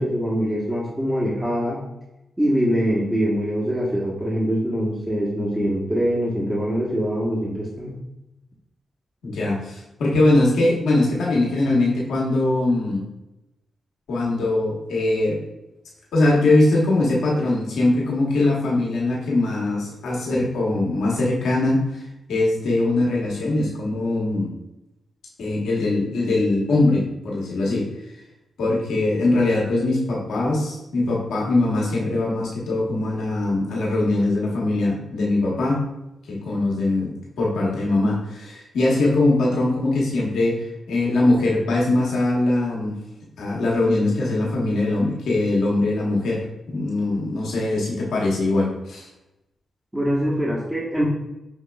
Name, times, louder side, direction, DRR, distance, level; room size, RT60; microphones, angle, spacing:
voice 1, 0.0-1.8 2.4-8.0 49.9-51.0, equal, 15° right, -5 dB, 1.1 m, -23 dB
voice 2, 9.2-13.0 14.1-15.4 16.1-22.0 22.3-24.5 25.4-28.1 28.6-35.9 36.3-43.0 43.4-49.1, left 2 dB, 80° left, -4 dB, 1.2 m, -21 dB
5.8 x 2.9 x 2.3 m, 0.95 s
supercardioid pair, 45°, 0 cm